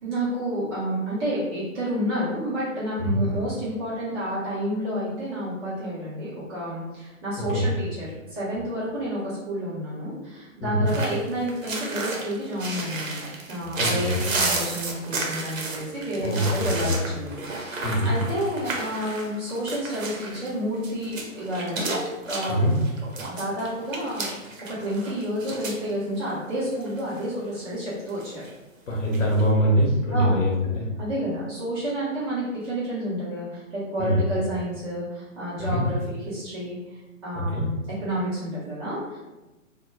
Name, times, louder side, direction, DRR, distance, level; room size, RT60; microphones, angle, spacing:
voice 1, 0.0-13.2 13.5-22.0 22.3-22.6 23.3-28.4 30.1-30.5 31.0-39.2, equal, 20° right, -9 dB, 0.6 m, -30 dB
sound 1, 10.9-25.9 26.2-26.3 26.7-27.2 28.1-28.5 29.0-29.4, right 3 dB, 70° right, 0.7 m, -32 dB
voice 2, 13.7-14.2 16.2-17.0 17.8-18.1 22.5-22.7 28.9-30.9 34.0-34.2 35.6-35.8 37.3-37.7, equal, 65° left, -3 dB, 0.9 m, -23 dB
2.2 x 2.1 x 3.2 m, 1.1 s
figure-of-eight pair, 125°, 41 cm